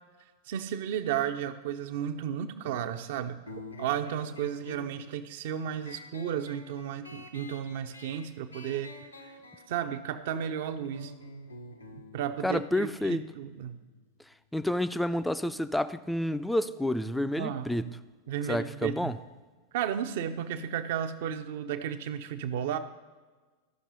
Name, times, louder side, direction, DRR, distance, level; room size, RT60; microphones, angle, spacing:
voice 1, 0.5-3.4 3.8-8.9 9.7-11.1 11.9-13.8 17.4-17.7 18.3-19.1 19.7-22.8, right 9 dB, 55° right, 0.6 m, -33 dB
sound 1, 3.5-14.6, left 1 dB, 80° left, 0.8 m, -48 dB
voice 2, 12.4-13.2 14.5-18.0 18.5-19.2, left 1 dB, 5° left, 0.4 m, -29 dB
13.5 x 6.0 x 4.0 m
figure-of-eight pair, 90°, 0 cm